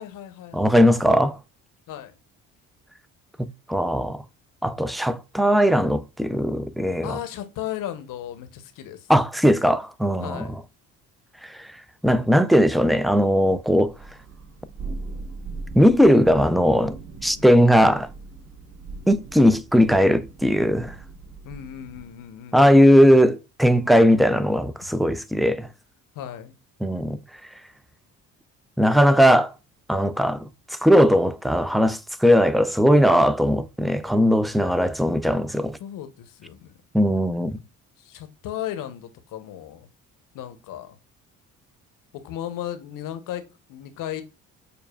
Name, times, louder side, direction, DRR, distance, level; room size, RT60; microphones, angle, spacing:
voice 1, 0.0-1.0 1.9-2.1 7.0-9.1 10.2-10.6 17.4-17.6 21.4-23.0 26.1-26.6 35.8-36.8 38.0-39.9 40.3-41.0 42.1-44.2, left 11 dB, 70° left, 0.8 m, -36 dB
voice 2, 0.5-1.4 3.4-4.2 4.6-7.2 9.1-10.4 11.4-11.7 12.0-13.9 15.8-17.0 17.2-18.1 19.1-21.0 22.5-25.7 26.8-27.2 28.8-29.5 29.9-30.4 30.7-35.8 36.9-37.6, equal, ahead, 0.3 m, -18 dB
Thunder, 13.8-22.2, right 3 dB, 60° right, 1.8 m, -40 dB
6.8 x 2.3 x 2.3 m
supercardioid pair, 70°, 34 cm